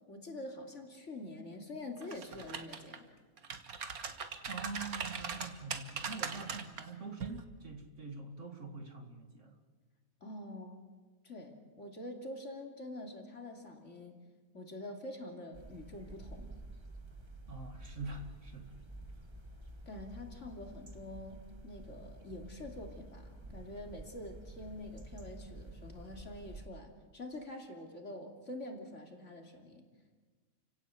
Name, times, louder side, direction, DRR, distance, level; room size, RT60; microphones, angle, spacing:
voice 1, 0.1-3.1 10.2-10.8 11.2-14.1 14.5-16.6 19.9-29.8, left 1 dB, 50° left, 3 dB, 3.1 m, -46 dB
sound 1, 2.0-3.0 3.4-6.8 7.2-7.4, right 6 dB, 65° right, 1.9 m, -40 dB
voice 2, 4.5-9.6 17.5-18.8, right 3 dB, 50° right, 5 dB, 2.4 m, -45 dB
sound 2, 15.5-26.7, right 2 dB, 20° right, 1.3 m, -50 dB
30.0 x 17.0 x 8.3 m, 1.4 s
omnidirectional pair, 1.7 m